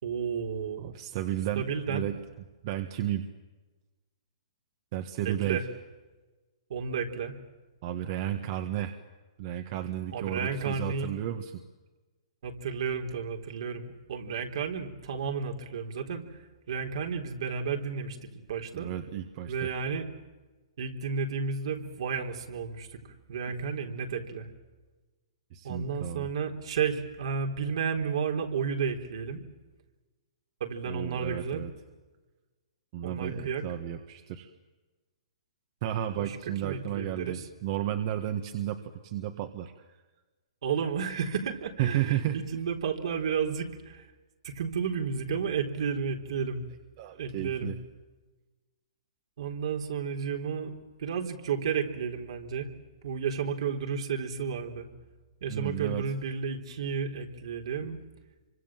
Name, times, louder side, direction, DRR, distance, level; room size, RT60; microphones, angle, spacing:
voice 1, 0.0-1.0 1.6-2.1 5.2-5.6 6.7-7.4 10.1-11.1 12.4-16.4 16.7-18.9 19.5-20.1 20.8-23.0 23.3-24.5 25.6-29.4 30.6-31.6 33.0-33.6 36.2-36.4 36.6-37.5 40.6-44.1 44.4-46.7 47.2-47.7 49.4-52.7 53.0-54.9 55.4-58.0, right 6 dB, 65° right, 3 dB, 4.0 m, -32 dB
voice 2, 0.8-2.2 2.6-3.3 4.9-5.6 7.8-9.0 9.4-11.6 18.7-19.7 23.5-23.6 25.5-26.3 30.8-31.7 32.9-34.5 35.8-40.0 41.8-42.4 47.0-47.7 55.5-56.1, right 11 dB, 45° right, 6 dB, 1.7 m, -33 dB
26.5 x 25.0 x 7.6 m, 1.2 s
hypercardioid pair, 145°, 3 cm